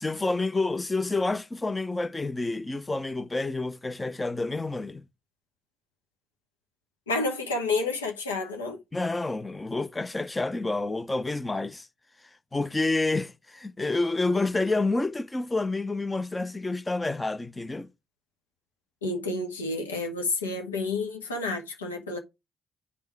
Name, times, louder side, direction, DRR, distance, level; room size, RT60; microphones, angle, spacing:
voice 1, 0.0-5.0 8.9-11.9 12.5-17.9, left 2 dB, 20° left, 0.6 m, -28 dB
voice 2, 7.1-8.8 19.0-22.2, left 3 dB, 90° left, 1.1 m, -30 dB
9.6 x 3.6 x 4.5 m
hypercardioid pair, 50°, 0 cm